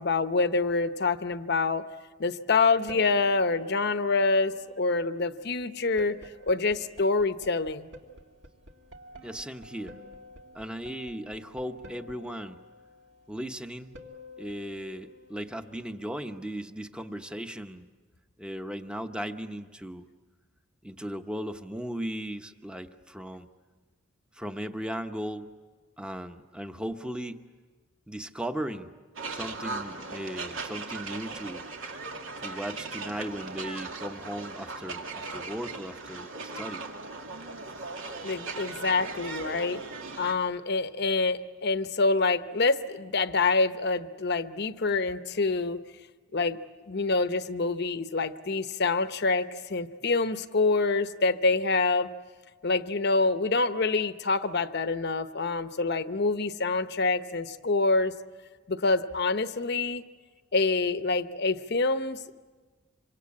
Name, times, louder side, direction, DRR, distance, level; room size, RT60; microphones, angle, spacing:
voice 1, 0.0-1.8 2.2-6.2 6.4-7.9 38.2-39.8 40.2-45.8 46.3-52.1 52.6-58.1 58.7-60.0 60.5-62.4, left 3 dB, 55° left, 11 dB, 0.9 m, -26 dB
sound 1, 2.8-15.9, left 2 dB, 60° right, 2.3 m, -50 dB
voice 2, 9.2-10.0 10.5-12.6 13.3-13.9 14.4-17.9 18.4-20.1 20.8-23.5 24.3-25.5 26.0-27.4 28.1-28.9 29.3-31.6 32.4-36.8, equal, 5° right, 7 dB, 0.9 m, -37 dB
sound 2, 29.2-40.3, right 3 dB, 80° right, 2.5 m, -38 dB
27.0 x 25.0 x 8.6 m, 1.4 s
head